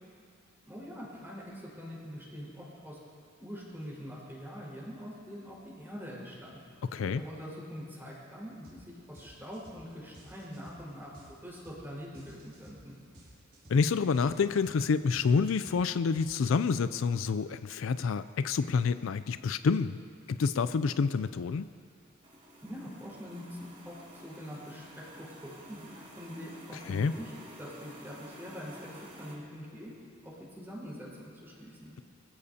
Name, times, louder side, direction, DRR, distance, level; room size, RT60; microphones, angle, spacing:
voice 1, 0.6-3.0 3.4-6.6 7.0-12.9 22.6-23.6 23.8-27.3 27.6-28.9 29.2-29.9 30.2-31.9, equal, 10° right, -6 dB, 4.8 m, -44 dB
voice 2, 6.9-7.2 13.7-20.0 20.3-21.7 26.9-27.1, left 5 dB, 70° left, 13 dB, 0.4 m, -28 dB
sound 1, 8.6-8.8 9.1-16.9, equal, 55° right, 4.9 m, -55 dB
sound 2, 22.2-29.3, right 1 dB, 30° right, 2.7 m, -50 dB
25.0 x 15.5 x 2.8 m, 2.3 s
head